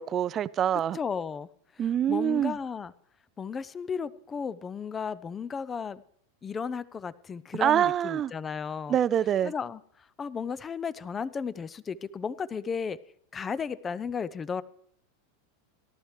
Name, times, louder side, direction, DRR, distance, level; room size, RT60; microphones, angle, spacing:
voice 1, 0.0-1.0 1.8-2.6 7.6-8.3 8.9-9.5, right 10 dB, 30° right, 0.4 m, -25 dB
voice 2, 0.9-1.5 2.1-2.9 3.4-6.0 6.4-9.0 9.4-9.8 10.2-13.0 13.3-14.6, left 6 dB, 20° left, 0.5 m, -34 dB
18.0 x 12.5 x 3.2 m
figure-of-eight pair, 90°, 0 cm